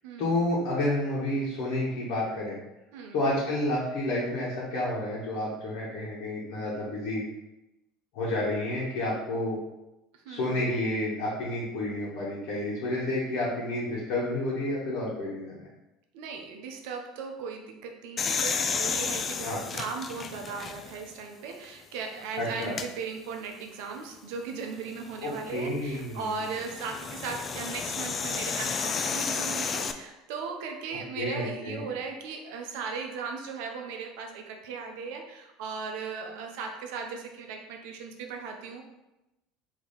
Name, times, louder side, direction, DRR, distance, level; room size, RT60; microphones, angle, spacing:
voice 1, 0.2-2.6 3.1-7.2 8.1-9.6 10.3-15.7 19.4-19.6 22.4-22.7 25.2-26.3 31.2-31.8, left 1 dB, 65° left, -7 dB, 1.2 m, -30 dB
voice 2, 2.9-3.3 10.2-10.7 16.1-38.8, right 5 dB, 70° right, 3 dB, 0.7 m, -37 dB
sound 1, 18.2-21.1 21.6-21.7 22.6-22.9 25.0-29.9, left 5 dB, 35° left, 0.4 m, -32 dB
3.5 x 2.9 x 4.2 m, 0.95 s
hypercardioid pair, 75°, 0 cm